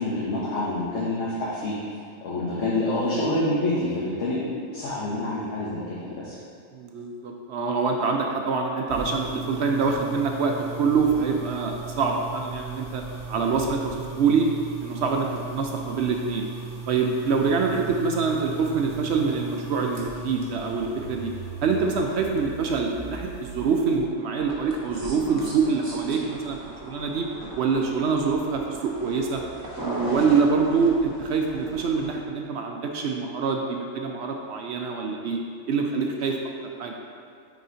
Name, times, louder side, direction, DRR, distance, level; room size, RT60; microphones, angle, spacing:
voice 1, 0.0-1.7 2.2-6.4 30.2-30.3, left 1 dB, 60° left, -7 dB, 1.2 m, -27 dB
voice 2, 6.7-13.0 13.3-14.5 14.8-16.5 16.9-21.3 21.6-27.3 27.6-29.4 29.8-35.4 35.7-36.4 36.8-36.9, right 5 dB, 65° right, 2 dB, 0.7 m, -25 dB
sound 1, 8.9-24.0, right 4 dB, 45° right, 1.4 m, -38 dB
sound 2, 24.3-32.2, right 1 dB, 20° right, 0.7 m, -38 dB
9.3 x 4.1 x 2.8 m, 2.4 s
omnidirectional pair, 1.5 m